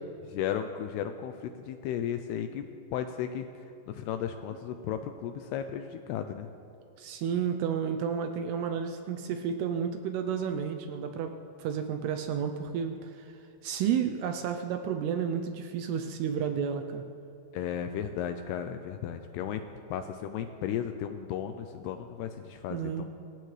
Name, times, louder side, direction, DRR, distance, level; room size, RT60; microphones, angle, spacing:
voice 1, 0.3-2.7 2.9-3.5 3.9-6.5 17.5-19.6 19.9-23.0, left 9 dB, 90° left, 7 dB, 2.3 m, -34 dB
voice 2, 7.0-11.3 11.6-13.3 13.6-17.0 22.7-23.0, right 7 dB, 80° right, 6 dB, 2.4 m, -31 dB
25.5 x 16.0 x 3.3 m, 2.6 s
omnidirectional pair, 5.4 m